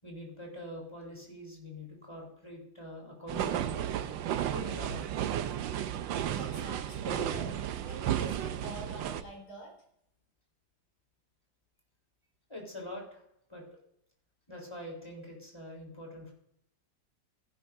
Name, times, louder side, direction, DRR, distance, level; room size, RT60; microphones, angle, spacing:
voice 1, 0.0-3.9 4.5-5.2 12.5-13.2 13.5-13.6 14.5-16.3, left 1 dB, 15° left, -1 dB, 4.0 m, -44 dB
sound 1, 3.3-9.2, right 10 dB, 80° right, 1.4 m, -33 dB
voice 2, 6.3-9.7, right 1 dB, 55° left, -1 dB, 4.3 m, -45 dB
15.5 x 10.5 x 2.7 m, 0.75 s
omnidirectional pair, 2.1 m